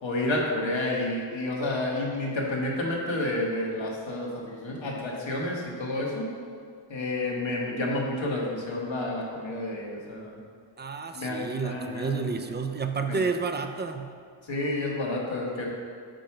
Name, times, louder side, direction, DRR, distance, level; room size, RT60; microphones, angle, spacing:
voice 1, 0.0-6.3 6.9-10.4 11.1-12.3 13.1-13.2 14.4-15.7, left 2 dB, 75° left, -2 dB, 1.3 m, -30 dB
voice 2, 10.8-14.1, right 5 dB, 25° right, 7 dB, 0.4 m, -30 dB
5.2 x 4.3 x 5.7 m, 2.1 s
wide cardioid pair, 70°, 46 cm